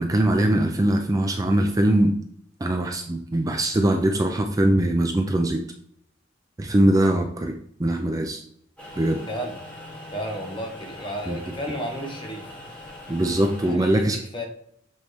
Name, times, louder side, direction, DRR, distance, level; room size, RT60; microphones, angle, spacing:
voice 1, 0.0-2.1 2.6-5.6 6.6-7.5 7.8-8.4 9.0-9.2 11.3-11.4 13.1-14.2, right 1 dB, 20° right, 4 dB, 0.4 m, -21 dB
sound 1, 8.8-13.7, left 1 dB, 5° left, 1.5 m, -41 dB
voice 2, 9.3-9.6 10.1-12.5 13.6-14.4, equal, 25° left, 1 dB, 1.1 m, -33 dB
7.2 x 3.1 x 4.2 m, 0.68 s
head